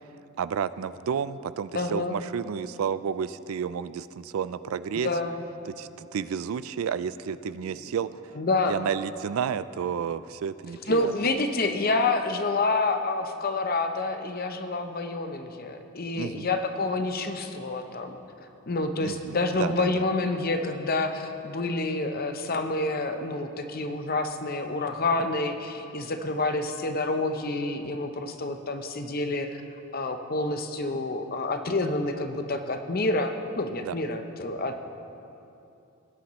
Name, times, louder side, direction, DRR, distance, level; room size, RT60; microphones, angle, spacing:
voice 1, 0.4-5.1 5.7-8.4 8.7-11.1 16.2-16.5 19.0-20.0 33.8-34.0, right 7 dB, 80° right, 15 dB, 0.3 m, -31 dB
voice 2, 1.7-2.2 4.9-5.4 8.4-8.8 10.9-18.2 18.7-29.6 29.9-34.8, left 2 dB, 45° left, 6 dB, 0.7 m, -28 dB
19.0 x 10.0 x 3.1 m, 2.8 s
head